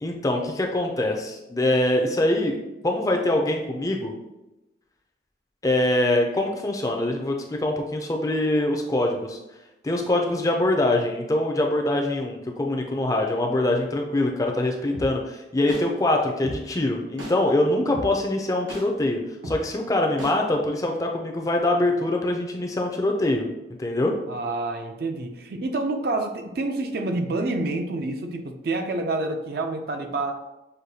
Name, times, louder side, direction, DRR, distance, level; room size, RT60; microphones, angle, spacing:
voice 1, 0.0-2.6 2.8-4.1 5.6-9.4 9.8-19.2 19.4-23.5 23.8-24.1, left 1 dB, 20° left, 2 dB, 0.4 m, -24 dB
sound 1, 14.9-15.1 15.7-15.8 16.4-16.6 17.2-17.3 17.9-18.1 18.7-18.8 19.4-19.6 20.2-20.3, equal, 85° right, 1.1 m, -33 dB
voice 2, 24.3-30.4, right 2 dB, 55° right, 5 dB, 0.4 m, -28 dB
6.3 x 2.2 x 2.7 m, 0.97 s
head